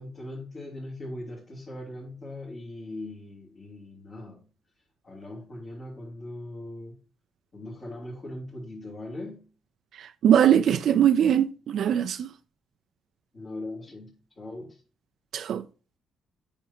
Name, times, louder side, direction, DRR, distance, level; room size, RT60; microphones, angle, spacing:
voice 1, 0.0-4.4 5.0-7.0 7.5-9.4 13.3-14.8, left 1 dB, 45° left, 3.0 m, -40 dB
voice 2, 10.0-12.3 15.3-15.6, right 9 dB, 65° right, 0.3 m, -21 dB
8.5 x 5.8 x 2.9 m
cardioid pair, 90°, 0 cm